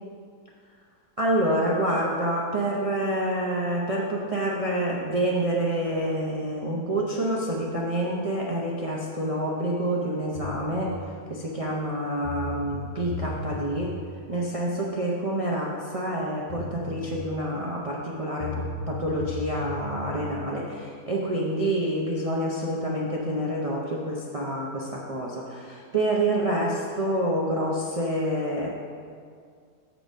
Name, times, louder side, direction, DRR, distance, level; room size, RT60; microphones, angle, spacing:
voice 1, 1.2-13.9 14.3-28.7, right 1 dB, 65° right, -4 dB, 0.3 m, -27 dB
sound 1, 10.3-10.9 11.9-12.0 12.2-13.9 16.1-16.2 16.5-17.1 18.4-20.2, left 3 dB, 55° left, 1.5 m, -35 dB
6.6 x 4.8 x 6.2 m, 2.2 s
omnidirectional pair, 1.7 m